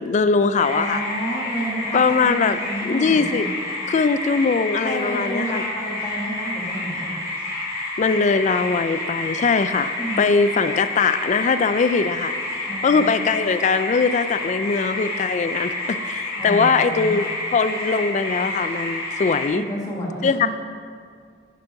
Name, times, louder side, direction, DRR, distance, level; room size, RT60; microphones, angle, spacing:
voice 1, 0.0-1.0 1.9-2.6 2.8-3.5 3.9-5.6 8.0-12.4 12.8-19.6 20.2-20.5, left 4 dB, 40° left, 12 dB, 0.3 m, -21 dB
sound 1, 0.5-19.5, left 2 dB, 15° right, 2.6 m, -29 dB
voice 2, 0.7-3.5 4.8-7.2 10.0-10.2 12.6-13.3 16.3-17.2 19.5-20.5, right 1 dB, 20° left, -4 dB, 1.6 m, -30 dB
9.5 x 5.3 x 5.7 m, 2.1 s
head